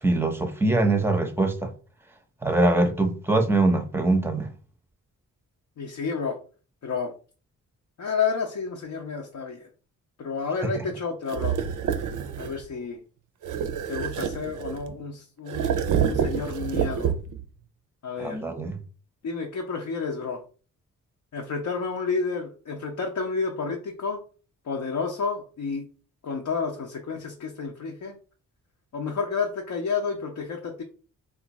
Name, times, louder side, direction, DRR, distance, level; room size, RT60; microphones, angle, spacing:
voice 1, 0.0-1.7 2.4-4.5 18.2-18.8, right 2 dB, 5° right, 0.6 m, -23 dB
voice 2, 5.8-6.4 6.8-7.1 8.0-9.7 10.2-11.6 12.4-13.0 13.9-15.7 15.9-17.1 18.0-18.4 19.2-20.4 21.3-24.2 24.6-25.9 26.2-28.2 28.9-30.8, left 5 dB, 60° left, 0.7 m, -30 dB
sound 1, 11.3-12.6 13.4-15.0 15.5-17.5, right 8 dB, 65° right, 0.5 m, -27 dB
2.5 x 2.3 x 4.0 m
cardioid pair, 70°, 33 cm